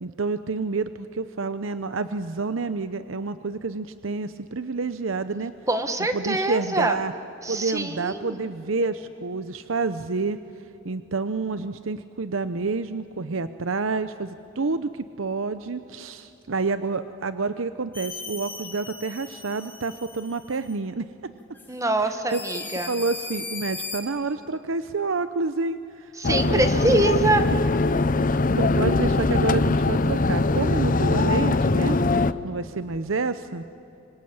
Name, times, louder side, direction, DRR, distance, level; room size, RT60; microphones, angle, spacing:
voice 1, 0.0-5.5 6.1-7.1 7.5-10.4 10.8-21.0 22.0-22.4 22.9-27.0 28.6-32.0 32.4-33.6, right 4 dB, 85° right, 11 dB, 0.8 m, -28 dB
voice 2, 5.7-7.0 7.4-8.5 21.7-22.9 26.2-27.4, right 2 dB, 15° right, 8 dB, 1.7 m, -24 dB
sound 1, 17.9-20.7 21.5-21.7 22.3-24.0, left 3 dB, 10° left, 3.9 m, -37 dB
sound 2, 26.2-32.3, left 3 dB, 45° left, 0.8 m, -22 dB
26.0 x 26.0 x 8.8 m, 2.7 s
head